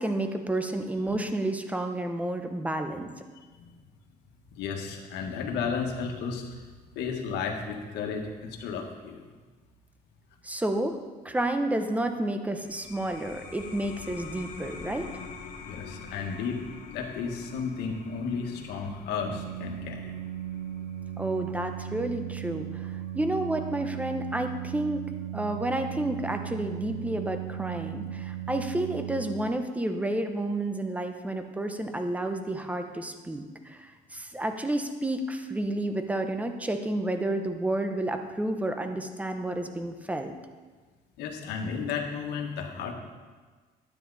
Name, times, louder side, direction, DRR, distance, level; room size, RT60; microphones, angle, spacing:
voice 1, 0.0-3.1 10.4-11.0 11.2-15.1 21.2-22.9 23.1-25.0 25.3-40.3, right 1 dB, 10° right, 6 dB, 1.0 m, -30 dB
voice 2, 4.5-6.6 7.0-9.2 15.6-16.6 16.9-20.1 41.2-42.9, left 5 dB, 85° left, 1 dB, 1.7 m, -33 dB
sound 1, 12.5-23.6, left 5 dB, 50° left, 1.8 m, -46 dB
Organ, 19.1-29.9, right 12 dB, 65° right, 0.6 m, -37 dB
12.5 x 9.4 x 4.2 m, 1.4 s
cardioid pair, 110°, 17 cm